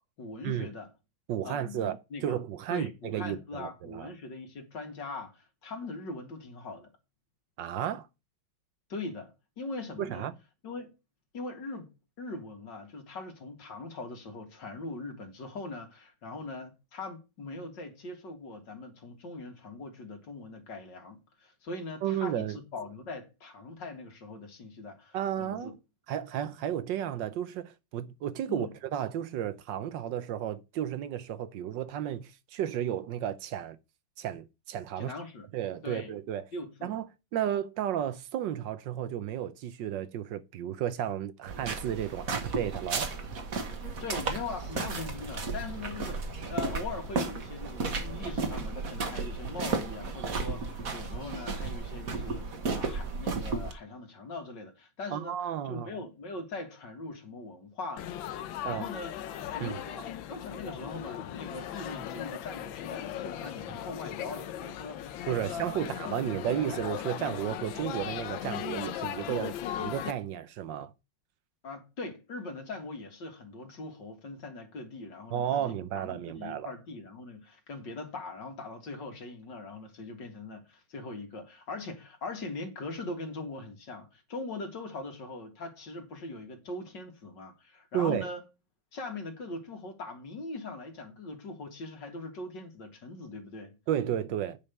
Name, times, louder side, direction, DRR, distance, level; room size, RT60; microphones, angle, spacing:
voice 1, 0.2-0.9 1.4-2.4 2.7-6.9 8.9-10.3 10.6-10.9 11.3-11.9 12.2-25.7 28.5-28.7 35.0-35.5 35.8-36.1 36.5-37.0 44.0-55.4 55.6-58.1 58.6-59.1 59.5-66.3 71.6-88.4 88.9-93.7, left 3 dB, 65° left, 2.7 m, -41 dB
voice 2, 1.3-4.1 7.6-8.1 10.0-10.3 22.0-22.6 25.1-25.8 26.1-33.8 34.2-35.1 35.5-36.4 36.8-37.1 37.3-43.1 55.1-55.9 58.6-58.8 59.6-59.7 65.3-70.9 75.3-76.7 87.9-88.3 93.9-94.6, right 10 dB, 75° right, 1.4 m, -33 dB
sound 1, 41.5-53.7, right 4 dB, 50° right, 1.8 m, -34 dB
Laughter / Chatter / Crowd, 58.0-70.1, left 10 dB, 85° left, 1.5 m, -38 dB
9.3 x 5.4 x 6.8 m
omnidirectional pair, 2.1 m